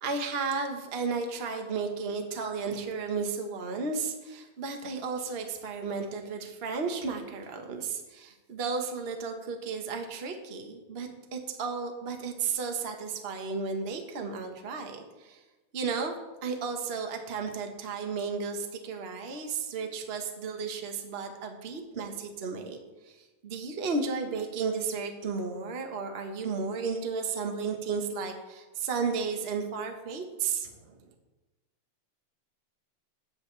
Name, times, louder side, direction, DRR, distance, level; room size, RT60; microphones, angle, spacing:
voice 1, 0.0-15.4 15.7-16.1 16.4-22.8 23.0-31.0, right 5 dB, 45° right, 4 dB, 0.8 m, -33 dB
20.5 x 9.6 x 3.4 m, 1.2 s
omnidirectional pair, 3.3 m